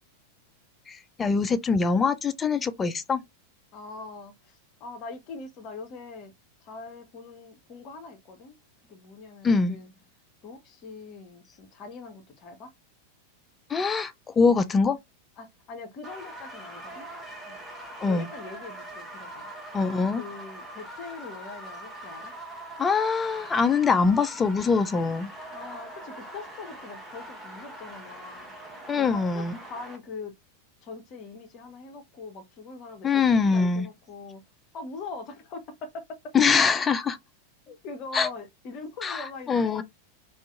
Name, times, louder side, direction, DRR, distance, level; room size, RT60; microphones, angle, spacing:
voice 1, 0.9-3.2 9.4-9.8 13.7-15.0 18.0-18.3 19.7-20.2 22.8-25.3 28.9-29.6 33.0-33.9 36.3-37.2 38.1-38.3 39.0-39.8, left 5 dB, 20° left, 0.3 m, -23 dB
voice 2, 3.7-6.3 6.6-8.6 8.9-9.9 10.4-12.7 15.4-17.1 17.4-17.7 18.0-19.5 20.1-22.3 25.5-28.5 29.0-30.4 30.8-34.4 34.7-36.3 37.7-39.8, left 3 dB, 35° left, 0.7 m, -42 dB
sound 1, 16.0-30.0, right 1 dB, 10° right, 0.9 m, -42 dB
2.5 x 2.4 x 2.4 m
figure-of-eight pair, 90°, 0 cm